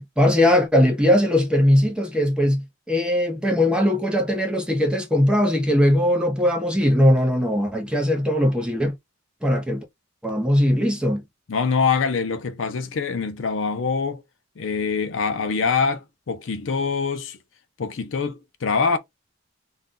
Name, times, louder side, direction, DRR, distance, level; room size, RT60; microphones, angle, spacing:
voice 1, 0.0-8.9 9.4-9.8 10.2-11.2, left 1 dB, 5° right, 0.6 m, -20 dB
voice 2, 11.5-14.2 14.6-17.4 17.8-19.0, left 5 dB, 70° left, 0.5 m, -24 dB
2.6 x 2.2 x 3.6 m
head